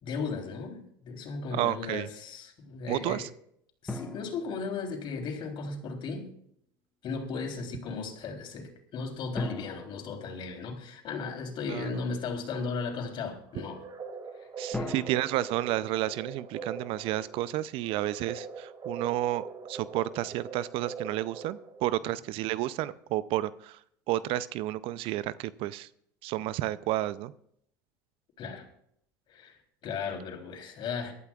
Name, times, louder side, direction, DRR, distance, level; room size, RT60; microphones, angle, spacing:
voice 1, 0.0-3.3 3.8-6.3 7.0-13.8 14.4-14.9 22.0-22.1 28.4-28.7 29.3-29.6 29.8-31.1, left 4 dB, 50° left, 3 dB, 3.6 m, -36 dB
voice 2, 1.5-2.1 2.9-3.3 11.7-11.9 14.6-23.8 24.1-25.9 26.2-27.3, right 15 dB, 55° right, 17 dB, 0.5 m, -31 dB
sound 1, 3.9-5.5 9.4-11.2 14.7-17.0, left 2 dB, 10° left, 1.5 m, -42 dB
sound 2, 13.5-21.9, right 5 dB, 35° right, 2.6 m, -42 dB
23.5 x 12.0 x 2.4 m, 0.70 s
hypercardioid pair, 80°, 11 cm